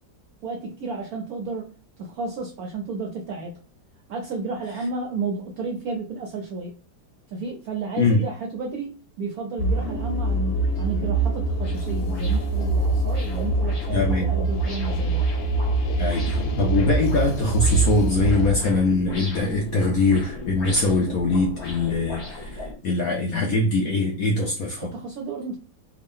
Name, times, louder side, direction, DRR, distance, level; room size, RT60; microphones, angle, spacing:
voice 1, 0.4-3.6 4.1-6.7 7.3-15.2 24.8-25.6, right 3 dB, 75° right, 0.8 m, -32 dB
sound 1, 9.6-18.5, right 3 dB, 85° left, 1.5 m, -24 dB
sound 2, 9.8-9.9 10.4-22.7, left 1 dB, 40° left, 1.3 m, -38 dB
voice 2, 13.9-14.3 16.0-24.9, left 3 dB, 70° left, 0.8 m, -22 dB
3.4 x 2.4 x 3.6 m
omnidirectional pair, 2.1 m